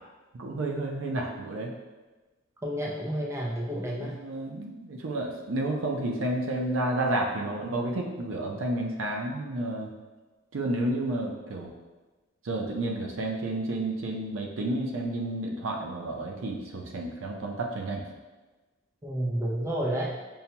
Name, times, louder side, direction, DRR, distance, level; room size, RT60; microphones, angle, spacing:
voice 1, 0.4-1.7 4.0-9.9 10.5-11.7 12.4-18.0, right 1 dB, 80° right, 1 dB, 0.5 m, -31 dB
voice 2, 2.6-4.2 19.0-20.2, right 1 dB, 15° right, -4 dB, 0.5 m, -30 dB
5.4 x 2.2 x 2.8 m, 1.2 s
head